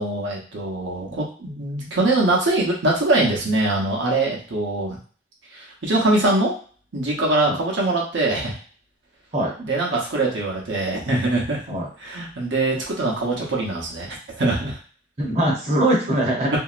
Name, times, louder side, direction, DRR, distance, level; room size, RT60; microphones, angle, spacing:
voice 1, 0.0-5.0 5.5-6.6 6.9-8.6 9.6-11.6 12.0-14.1 14.4-14.8 16.5-16.6, right 2 dB, 85° right, -2 dB, 0.9 m, -22 dB
voice 2, 15.2-16.6, right 1 dB, 35° right, -3 dB, 0.8 m, -21 dB
2.9 x 2.7 x 2.5 m, 0.41 s
head